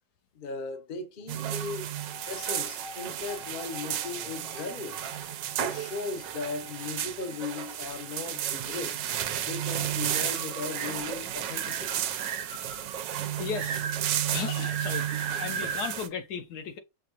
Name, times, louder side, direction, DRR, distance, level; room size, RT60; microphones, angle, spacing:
voice 1, 0.3-1.9 2.2-5.0 5.6-9.0 9.5-12.1, left 4 dB, 50° left, 0.6 m, -37 dB
sound 1, 1.3-16.1, right 10 dB, 85° right, 1.3 m, -32 dB
sound 2, 1.9-12.9, left 1 dB, 60° right, 1.0 m, -51 dB
voice 2, 13.1-16.8, left 7 dB, 70° left, 1.1 m, -37 dB
5.9 x 2.3 x 2.9 m
omnidirectional pair, 1.9 m